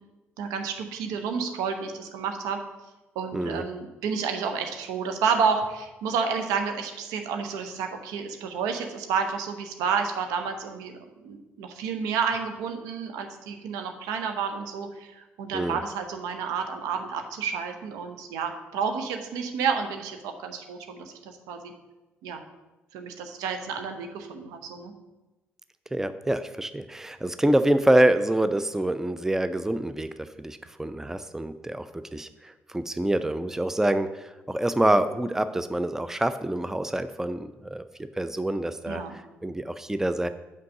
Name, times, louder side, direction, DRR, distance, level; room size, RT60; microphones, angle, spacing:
voice 1, 0.4-2.6 3.1-10.9 11.2-21.7 22.2-22.4 22.9-24.9 38.9-39.1, right 6 dB, 75° right, 5 dB, 0.8 m, -30 dB
voice 2, 3.3-3.6 15.5-15.8 25.9-37.8 38.2-40.3, right 1 dB, 5° right, 11 dB, 0.4 m, -26 dB
5.9 x 4.7 x 6.4 m, 1.1 s
hypercardioid pair, 45°, 6 cm